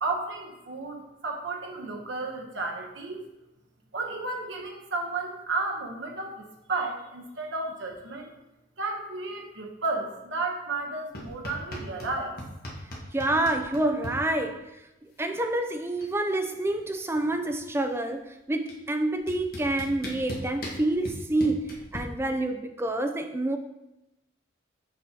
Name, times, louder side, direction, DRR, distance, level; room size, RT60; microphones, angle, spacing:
voice 1, 0.0-3.2 3.9-8.3 8.8-12.4, right 3 dB, 75° right, 0.9 m, -33 dB
sound 1, 11.1-12.1 12.4-14.1 15.4-15.5 15.8-16.2 16.4-17.8 18.7-18.8 19.3-22.0, equal, 50° left, 1.3 m, -38 dB
voice 2, 13.1-14.8 15.0-23.6, right 2 dB, 15° right, 0.4 m, -28 dB
6.8 x 5.9 x 2.8 m
head